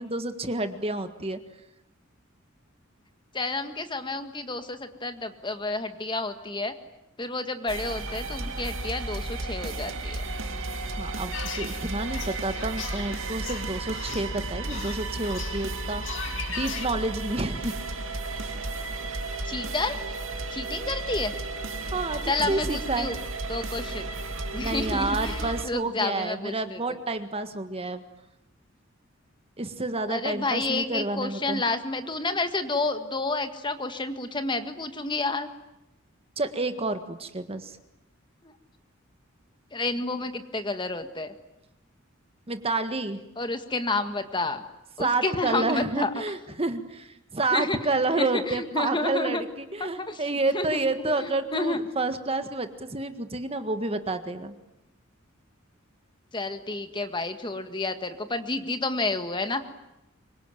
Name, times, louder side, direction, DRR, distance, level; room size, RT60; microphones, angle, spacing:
voice 1, 0.0-1.4 11.0-17.7 21.8-23.1 24.6-28.0 29.6-31.6 36.4-37.8 42.5-43.2 45.0-54.5, right 2 dB, 30° right, 9 dB, 1.7 m, -29 dB
voice 2, 3.3-6.7 7.2-10.2 19.5-20.0 20.5-21.3 22.3-23.1 23.5-24.1 24.5-26.8 30.1-35.5 38.4-38.5 39.7-41.3 43.4-44.6 45.0-46.1 47.5-47.8 48.2-49.4 49.9-50.2 50.5-50.8 51.2-51.8 56.3-59.6, left 2 dB, 25° left, 8 dB, 1.8 m, -30 dB
sound 1, 7.7-25.7, right 2 dB, 75° right, 2.6 m, -33 dB
sound 2, 11.3-16.9, left 7 dB, 65° left, 2.4 m, -39 dB
26.0 x 24.0 x 9.2 m, 0.91 s
head